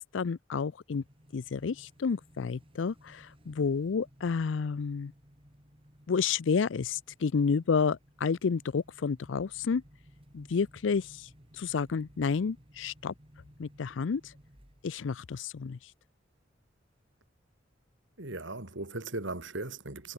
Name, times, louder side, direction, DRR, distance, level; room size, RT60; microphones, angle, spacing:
voice 1, 0.1-1.0 1.3-5.1 6.1-9.8 10.3-11.3 11.6-13.1 13.6-14.3 14.8-15.8, left 5 dB, 75° left, 0.5 m, -30 dB
sound 1, 0.9-15.1, equal, 30° right, 5.8 m, -59 dB
voice 2, 18.2-20.1, right 2 dB, 75° right, 3.3 m, -38 dB
head